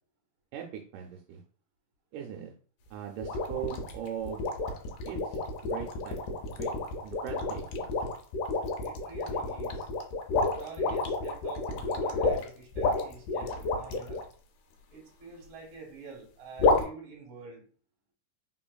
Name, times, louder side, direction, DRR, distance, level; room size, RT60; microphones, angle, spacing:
voice 1, 0.5-1.4 2.1-2.5 2.9-4.5 5.1-6.2 6.5-6.7 7.0-7.9, right 9 dB, 80° right, 1 dB, 2.0 m, -40 dB
sound 1, 3.2-14.2 16.6-16.8, left 3 dB, 80° left, 2.2 m, -30 dB
voice 2, 8.8-9.9 10.6-14.3 14.9-17.7, right 4 dB, 55° right, -1 dB, 1.9 m, -47 dB
4.4 x 3.6 x 2.2 m, 0.43 s
omnidirectional pair, 3.8 m